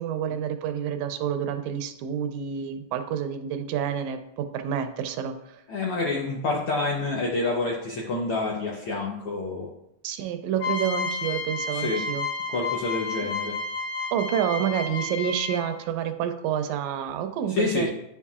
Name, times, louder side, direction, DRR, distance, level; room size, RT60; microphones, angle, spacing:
voice 1, 0.0-5.6 10.0-12.3 14.1-17.9, right 9 dB, 80° right, 8 dB, 1.9 m, -29 dB
voice 2, 5.7-9.7 11.7-12.0 12.5-13.6 17.5-17.9, left 3 dB, 70° left, -2 dB, 1.3 m, -28 dB
sound 1, 10.6-15.8, left 3 dB, 90° left, 2.5 m, -31 dB
9.5 x 5.5 x 2.4 m, 0.81 s
omnidirectional pair, 3.4 m